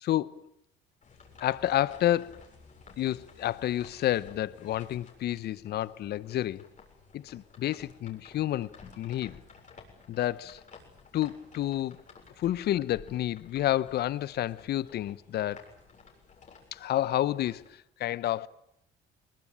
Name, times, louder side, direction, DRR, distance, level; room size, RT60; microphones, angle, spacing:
voice 1, 0.0-0.4 1.4-2.4 3.0-6.6 7.1-8.7 9.0-9.4 10.1-10.6 11.1-12.0 12.4-15.6 16.7-17.6 18.0-18.5, left 13 dB, 60° left, 0.9 m, -29 dB
sound 1, 1.0-17.7, left 5 dB, 40° left, 7.5 m, -54 dB
23.0 x 20.5 x 10.0 m
supercardioid pair, 75°, 19 cm